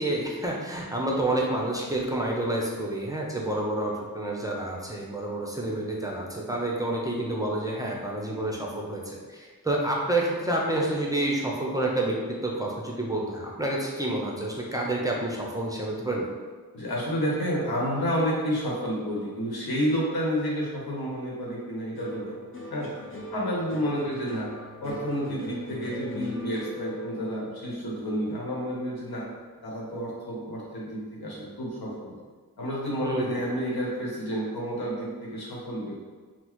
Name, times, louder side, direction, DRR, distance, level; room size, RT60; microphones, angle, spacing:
voice 1, 0.0-16.3 33.0-33.4, right 1 dB, 10° right, -3 dB, 0.6 m, -29 dB
voice 2, 16.7-22.3 22.7-22.9 23.3-24.5 24.8-29.3 29.6-32.1 32.6-36.1, equal, 85° left, -4 dB, 0.9 m, -30 dB
sound 1, 22.0-30.4 30.7-31.4, left 1 dB, 35° left, 0.7 m, -41 dB
3.8 x 2.0 x 3.0 m, 1.5 s
cardioid pair, 50°, 36 cm